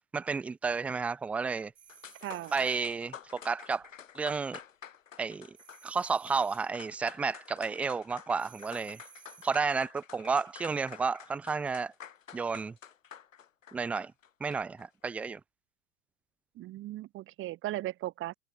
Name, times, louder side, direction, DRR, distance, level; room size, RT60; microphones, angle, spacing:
voice 1, 0.1-1.7 2.5-3.9 4.2-4.6 5.2-5.6 5.8-9.0 9.4-11.9 12.3-12.7 13.7-14.1 14.4-15.4, right 5 dB, 5° right, 0.4 m, -31 dB
sound 1, 1.7-2.9 5.5-6.7 8.4-9.6, right 8 dB, 65° right, 6.2 m, -56 dB
sound 2, 1.9-14.9, left 8 dB, 65° left, 6.2 m, -50 dB
voice 2, 2.2-2.5 16.5-18.3, right 16 dB, 30° right, 4.9 m, -37 dB
figure-of-eight pair, 100°, 42 cm